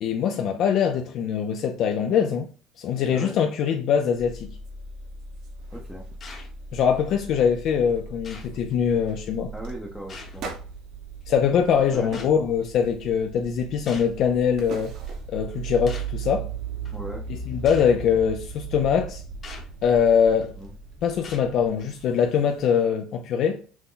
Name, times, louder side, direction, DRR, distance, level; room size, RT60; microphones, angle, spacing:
voice 1, 0.0-2.5 2.8-4.5 6.7-9.5 11.3-14.9 15.3-16.5 17.3-19.2 19.8-20.5 21.0-23.6, left 7 dB, 50° left, 0.5 m, -23 dB
sound 1, 4.1-22.6, right 5 dB, 80° right, 0.9 m, -38 dB
sound 2, 4.6-4.7 5.1-5.9 6.2-6.5 6.9-7.3 7.9-8.0 8.4-8.6 9.0-9.2 10.4-11.8 12.1-12.4 12.8-13.3 13.9-15.5 21.5-22.9, right 4 dB, 55° right, 1.1 m, -43 dB
voice 2, 5.7-6.0 9.5-10.4 11.9-12.1 16.9-17.2 20.6-20.7, equal, ahead, 0.7 m, -37 dB
sound 3, 6.2-6.6 7.4-7.5 8.2-8.6 10.1-10.5 12.1-12.4 13.9-14.2 15.1-15.2 15.9-16.2 16.9-17.0 17.7-17.9 19.4-19.7 20.4-20.7 21.2-21.5, left 4 dB, 30° left, 1.0 m, -43 dB
6.1 x 2.2 x 3.8 m
cardioid pair, 150°, 0 cm